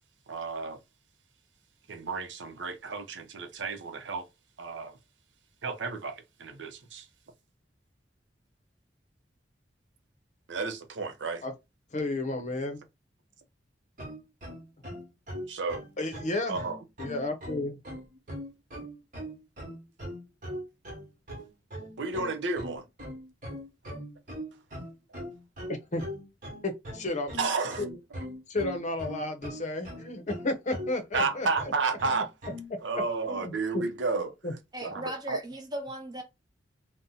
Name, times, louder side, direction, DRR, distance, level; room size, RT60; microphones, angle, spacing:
voice 1, 0.3-0.8 1.9-4.3 4.6-5.0 5.6-7.1 10.5-11.4 15.5-15.8 16.5-16.8 22.0-22.8 27.4-27.8 31.1-32.3 32.8-34.3 34.8-35.4, right 4 dB, 75° right, 0.6 m, -32 dB
voice 2, 11.9-12.8 16.0-16.6 17.0-17.8 25.7-26.0 26.6-27.3 27.8-27.9 28.5-31.7 33.3-33.8 34.4-34.5, left 2 dB, 40° left, 0.7 m, -32 dB
sound 1, 14.0-32.7, equal, 45° right, 1.2 m, -40 dB
voice 3, 34.7-36.2, right 1 dB, 20° right, 0.6 m, -37 dB
2.7 x 2.1 x 3.7 m
head